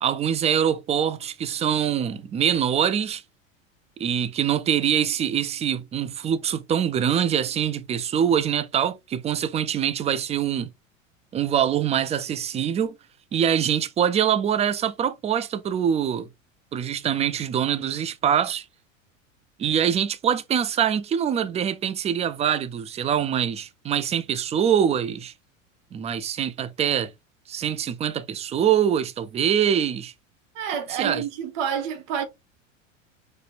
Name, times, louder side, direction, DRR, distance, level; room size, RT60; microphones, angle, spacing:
voice 1, 0.0-3.2 4.0-10.7 11.3-12.9 13.3-16.3 16.7-18.6 19.6-25.3 25.9-27.1 27.5-30.1 31.0-31.2, right 9 dB, 15° right, 0.4 m, -24 dB
voice 2, 30.5-32.2, right 8 dB, 65° right, 1.2 m, -28 dB
4.2 x 3.2 x 2.5 m
hypercardioid pair, 90°, 40 cm